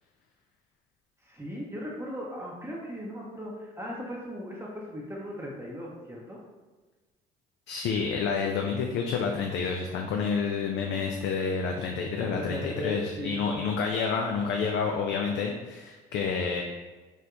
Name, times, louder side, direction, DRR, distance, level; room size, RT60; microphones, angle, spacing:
voice 1, 1.2-6.4 12.2-13.7, equal, 15° right, -4 dB, 0.7 m, -38 dB
voice 2, 7.7-16.6, left 5 dB, 60° left, 2 dB, 0.4 m, -29 dB
4.4 x 2.2 x 2.4 m, 1.3 s
hypercardioid pair, 65°, 20 cm